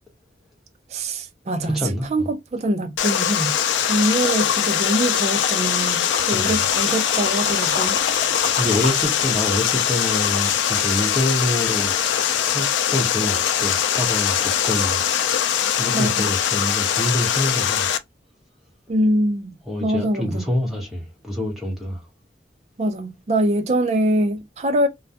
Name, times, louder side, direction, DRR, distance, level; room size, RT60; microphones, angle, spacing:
voice 1, 0.9-1.8 2.1-8.0 15.9-16.1 18.9-19.6 19.8-20.5 22.8-24.9, right 1 dB, 35° right, 0.3 m, -23 dB
voice 2, 1.7-2.3 6.3-6.6 8.6-11.9 12.3-15.0 15.3-15.5 15.8-17.9 19.7-22.0, left 1 dB, ahead, 0.9 m, -26 dB
Water, 3.0-18.0, left 9 dB, 90° left, 0.3 m, -22 dB
sound 1, 5.7-9.0 9.2-10.7 11.2-11.3, left 2 dB, 45° left, 0.8 m, -32 dB
2.2 x 2.1 x 2.6 m
head